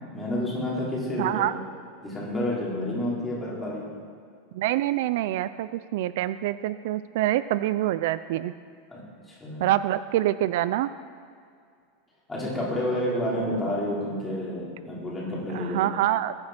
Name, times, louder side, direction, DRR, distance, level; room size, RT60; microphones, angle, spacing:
voice 1, 0.1-1.5 2.0-3.9 8.9-9.7 12.3-16.0, left 1 dB, 10° left, -6 dB, 4.4 m, -30 dB
voice 2, 1.2-1.5 4.5-8.5 9.6-10.9 15.5-16.3, right 14 dB, 60° right, 14 dB, 0.5 m, -26 dB
21.5 x 9.7 x 6.1 m, 2.2 s
supercardioid pair, 165°, 0 cm